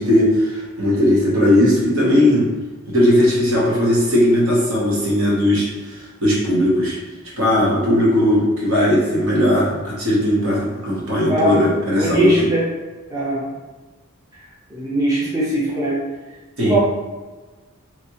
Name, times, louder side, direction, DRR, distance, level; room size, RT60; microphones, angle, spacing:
voice 1, 0.0-2.5 2.9-7.0 7.4-12.3 16.6-16.8, left 1 dB, 70° right, -5 dB, 1.1 m, -17 dB
voice 2, 11.3-11.6 12.0-12.7 13.1-13.5 14.4-16.0 16.6-16.8, right 1 dB, 15° right, -7 dB, 0.6 m, -22 dB
3.2 x 2.8 x 2.9 m, 1.3 s
head